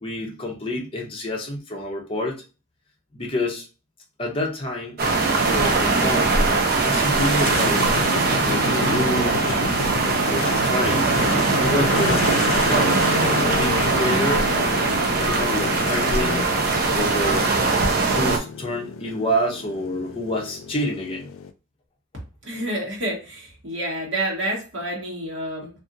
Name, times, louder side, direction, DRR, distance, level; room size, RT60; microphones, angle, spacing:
voice 1, 0.0-2.4 3.1-3.6 4.2-5.0 5.5-6.3 6.8-7.9 8.4-9.6 10.3-11.1 11.6-12.2 12.5-13.0 13.5-14.9 15.2-16.4 16.9-17.5 18.1-21.3, equal, 25° left, -1 dB, 0.7 m, -27 dB
sound 1, 5.0-18.4, right 3 dB, 50° right, 0.5 m, -21 dB
sound 2, 7.2-21.5, left 5 dB, 85° left, 0.3 m, -31 dB
voice 2, 22.4-25.7, right 1 dB, 65° right, -2 dB, 1.1 m, -28 dB
2.7 x 2.5 x 2.5 m, 0.33 s
head